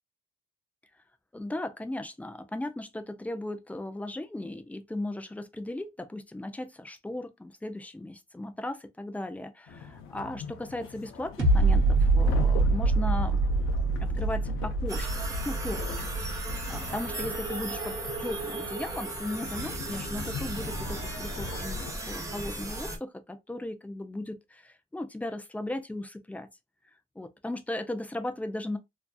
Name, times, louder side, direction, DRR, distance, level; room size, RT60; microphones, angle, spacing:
voice 1, 1.3-13.5 14.0-15.8 16.3-26.5 27.2-28.8, left 1 dB, 5° left, 0.4 m, -37 dB
sound 1, 9.7-21.9, left 5 dB, 85° left, 0.6 m, -42 dB
sound 2, 11.4-18.4 18.9-19.0, right 2 dB, 75° right, 0.9 m, -26 dB
sound 3, 14.9-23.0, right 2 dB, 15° right, 0.8 m, -36 dB
2.6 x 2.3 x 2.3 m
cardioid pair, 90°, 20 cm